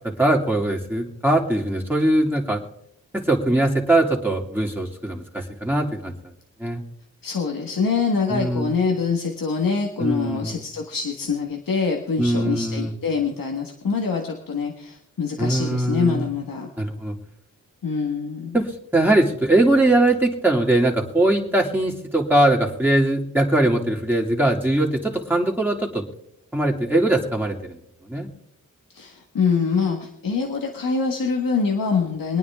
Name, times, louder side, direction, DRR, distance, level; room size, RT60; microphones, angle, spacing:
voice 1, 0.0-2.6 3.1-6.1 6.6-6.8 8.3-8.7 10.0-10.6 12.2-12.9 15.4-16.3 16.8-17.2 18.5-26.1 26.5-28.3, right 1 dB, 5° right, -1 dB, 2.7 m, -21 dB
voice 2, 7.2-16.7 17.8-18.6 28.9-32.4, left 5 dB, 75° left, 0 dB, 1.7 m, -24 dB
24.5 x 9.4 x 3.6 m, 0.76 s
cardioid pair, 45°, 34 cm